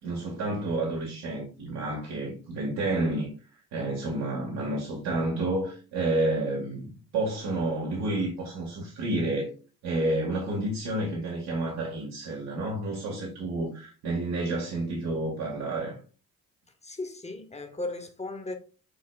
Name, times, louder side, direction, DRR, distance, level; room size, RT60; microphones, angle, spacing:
voice 1, 0.0-3.3 3.7-9.5 9.8-16.0, right 2 dB, 60° right, 1.9 m, -30 dB
voice 2, 16.8-18.6, left 2 dB, 15° left, 1.5 m, -36 dB
11.5 x 4.2 x 2.4 m
figure-of-eight pair, 40°, 45 cm